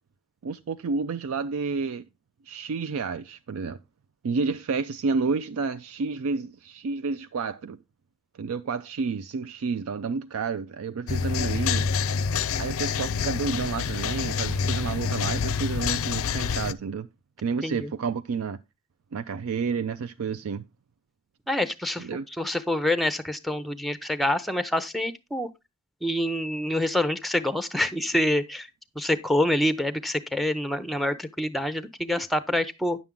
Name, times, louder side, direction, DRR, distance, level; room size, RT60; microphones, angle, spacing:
voice 1, 0.4-2.1 2.5-3.8 4.2-7.8 8.3-11.9 12.6-17.1 17.4-18.6 19.1-20.6 22.0-22.3, right 5 dB, 75° right, 0.4 m, -30 dB
sound 1, 11.1-16.7, left 6 dB, 65° left, 0.4 m, -27 dB
voice 2, 21.5-25.5 26.0-28.7 29.0-33.0, left 1 dB, ahead, 0.5 m, -26 dB
9.7 x 7.1 x 3.6 m
head